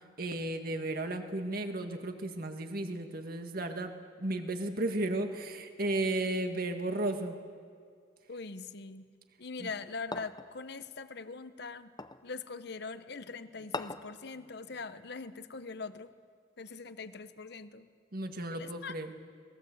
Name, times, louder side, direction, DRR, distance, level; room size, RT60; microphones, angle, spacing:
voice 1, 0.2-3.9 4.2-7.4 9.6-9.7 18.1-19.1, right 2 dB, 55° right, 5 dB, 1.9 m, -34 dB
voice 2, 8.3-9.1 9.4-11.9 12.2-16.1 16.6-17.9 18.5-19.0, left 4 dB, 60° left, 11 dB, 1.0 m, -42 dB
sound 1, 10.1-10.5 12.0-12.3 13.7-14.2, left 3 dB, 25° left, 0.8 m, -39 dB
26.0 x 20.5 x 8.0 m, 2.2 s
head